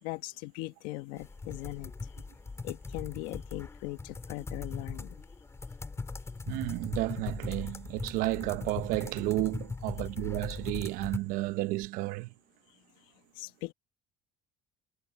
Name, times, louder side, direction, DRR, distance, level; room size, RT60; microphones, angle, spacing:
voice 1, 0.0-2.2 2.6-5.2 12.7-12.8 13.3-13.7, left 20 dB, 80° left, 1.5 m, -40 dB
sound 1, 1.2-11.2, left 3 dB, 20° left, 4.7 m, -40 dB
voice 2, 6.5-12.3, right 19 dB, 75° right, 0.9 m, -32 dB
supercardioid pair, 105°, 14 cm